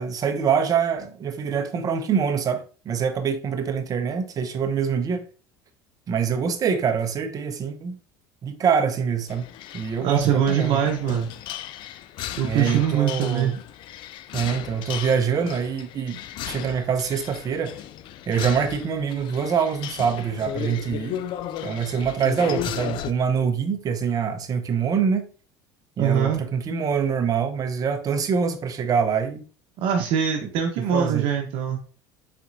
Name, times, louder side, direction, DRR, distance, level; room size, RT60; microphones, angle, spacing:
voice 1, 0.0-5.3 6.1-8.0 8.4-9.5 9.7-10.8 12.4-13.6 14.3-17.8 18.3-21.2 21.6-25.3 26.0-29.4 30.4-30.5 30.8-31.3, right 6 dB, 35° right, 0.8 m, -25 dB
sound 1, 9.3-23.1, left 11 dB, 55° left, 0.4 m, -35 dB
voice 2, 10.0-11.3 12.4-13.5 26.0-26.4 29.8-31.8, right 8 dB, 65° right, 0.9 m, -23 dB
4.2 x 4.2 x 2.6 m
supercardioid pair, 90°, 10 cm